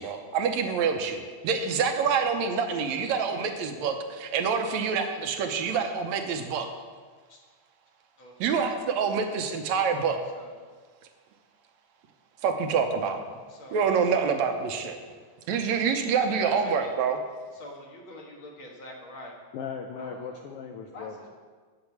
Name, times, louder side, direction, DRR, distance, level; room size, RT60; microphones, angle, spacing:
voice 1, 0.0-6.7 8.4-10.2 12.4-13.2 13.7-15.0 15.5-17.2, right 6 dB, 80° right, 5 dB, 2.1 m, -26 dB
voice 2, 3.2-3.6 5.7-5.8 7.3-7.4 8.2-8.7 10.3-10.6 13.5-14.0 16.2-16.9 17.5-19.4 20.0-20.5 20.9-21.4, left 1 dB, 50° left, -1 dB, 2.0 m, -45 dB
voice 3, 19.5-21.4, left 6 dB, 80° left, 4 dB, 1.3 m, -38 dB
8.8 x 8.0 x 7.0 m, 1.5 s
omnidirectional pair, 3.3 m